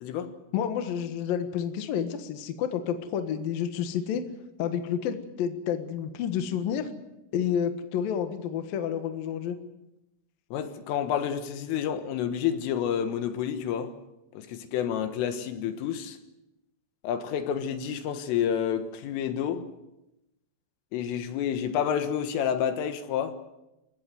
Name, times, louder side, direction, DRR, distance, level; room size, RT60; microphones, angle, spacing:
voice 1, 0.0-0.3 10.5-13.9 14.3-16.2 17.0-19.7 20.9-23.4, left 9 dB, 75° left, 3.9 m, -29 dB
voice 2, 0.5-4.2 4.6-6.9 7.3-9.6, left 8 dB, 60° left, 2.6 m, -30 dB
29.0 x 16.5 x 7.7 m
omnidirectional pair, 5.9 m